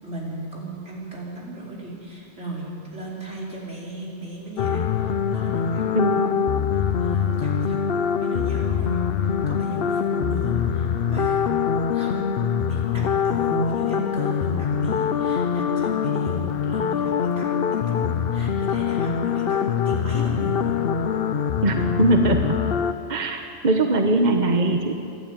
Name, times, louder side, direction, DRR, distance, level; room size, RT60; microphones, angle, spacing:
voice 1, 0.0-7.8 8.1-11.4 11.9-20.8, right 2 dB, 90° right, -4 dB, 5.0 m, -36 dB
sound 1, 4.6-22.9, left 7 dB, 60° left, 0.9 m, -24 dB
voice 2, 21.6-22.4 23.1-24.9, right 2 dB, 40° right, 4 dB, 1.4 m, -21 dB
28.0 x 11.5 x 9.0 m, 2.5 s
omnidirectional pair, 1.2 m